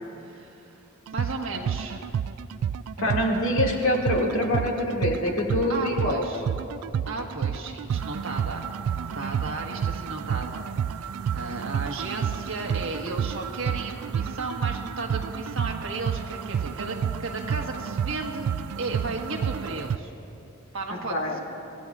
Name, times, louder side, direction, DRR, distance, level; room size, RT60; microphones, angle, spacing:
voice 1, 0.2-0.8 1.1-2.1 5.7-6.4 7.1-8.7 9.0-10.6 11.0-20.1 20.7-21.4, right 3 dB, 65° right, 1 dB, 1.4 m, -34 dB
sound 1, 1.1-20.0, right 8 dB, 85° right, 0.3 m, -30 dB
voice 2, 3.0-6.2 21.1-21.4, left 1 dB, 70° left, -1 dB, 2.1 m, -25 dB
26.0 x 15.5 x 2.4 m, 2.9 s
head